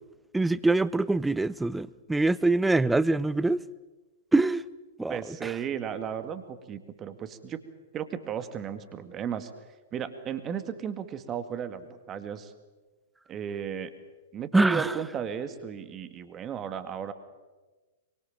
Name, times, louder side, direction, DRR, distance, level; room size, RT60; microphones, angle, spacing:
voice 1, 0.3-3.6 4.3-4.6 5.0-5.5 14.5-14.9, right 2 dB, 5° right, 0.7 m, -24 dB
voice 2, 5.1-7.6 7.9-9.5 9.9-12.5 13.3-13.9 14.3-17.1, right 8 dB, 25° right, 2.1 m, -34 dB
24.5 x 24.0 x 7.5 m
figure-of-eight pair, 110°, 0 cm